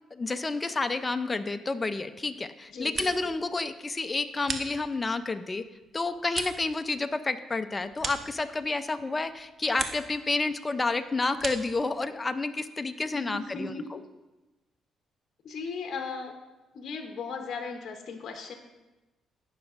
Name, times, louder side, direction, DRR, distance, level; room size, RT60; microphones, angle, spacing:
voice 1, 0.1-5.6 5.9-13.7, left 3 dB, 25° left, 10 dB, 0.4 m, -30 dB
sound 1, 2.6-3.5 3.8-5.2 5.6-8.9 9.3-10.2 10.5-11.8, right 4 dB, 45° right, 0.9 m, -39 dB
voice 2, 2.7-3.1 13.1-14.0 15.4-16.3 16.7-18.6, left 4 dB, 60° left, 3 dB, 0.8 m, -37 dB
15.5 x 6.2 x 2.5 m, 1.1 s
cardioid pair, 90°, 0 cm